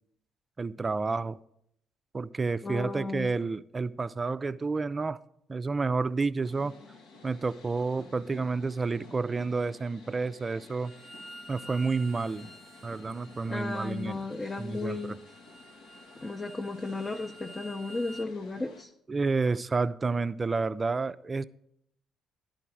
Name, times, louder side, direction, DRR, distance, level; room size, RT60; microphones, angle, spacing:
voice 1, 0.6-1.4 2.1-5.2 5.5-6.7 7.2-10.9 11.5-12.5 12.8-14.2 14.6-15.2 19.1-21.4, right 4 dB, 35° right, 0.3 m, -30 dB
voice 2, 2.6-3.3 13.5-15.1 16.2-18.9, left 3 dB, 30° left, 0.6 m, -34 dB
sound 1, 6.4-18.8, left 3 dB, 80° left, 0.9 m, -53 dB
Bowed string instrument, 10.8-18.3, right 1 dB, 10° left, 1.0 m, -50 dB
11.0 x 3.9 x 6.1 m
hypercardioid pair, 50°, 0 cm